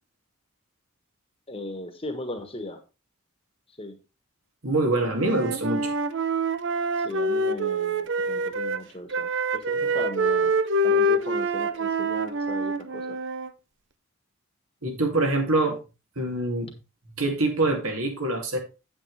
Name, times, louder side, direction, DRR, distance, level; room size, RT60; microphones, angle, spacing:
voice 1, 1.5-2.8 3.8-4.0 6.9-10.6 10.8-13.2, left 1 dB, 25° left, 7 dB, 1.4 m, -38 dB
voice 2, 4.6-5.9 14.8-15.8 16.2-16.7 17.2-18.6, right 2 dB, 75° right, 3 dB, 2.8 m, -25 dB
Wind instrument woodwind instrument, 5.1-8.8 9.1-13.5, right 1 dB, 55° right, 0.6 m, -26 dB
8.8 x 8.6 x 3.4 m, 0.29 s
head